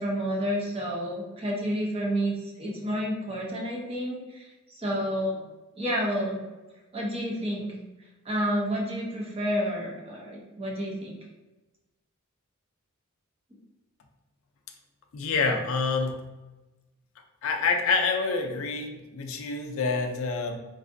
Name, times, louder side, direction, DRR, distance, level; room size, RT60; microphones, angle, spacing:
voice 1, 0.0-5.4 5.8-6.4 6.9-7.7 8.2-11.2, equal, 25° right, -2 dB, 0.7 m, -30 dB
voice 2, 15.1-16.3 17.4-20.6, left 4 dB, 65° left, 4 dB, 0.4 m, -27 dB
3.2 x 2.6 x 2.5 m, 1.1 s
head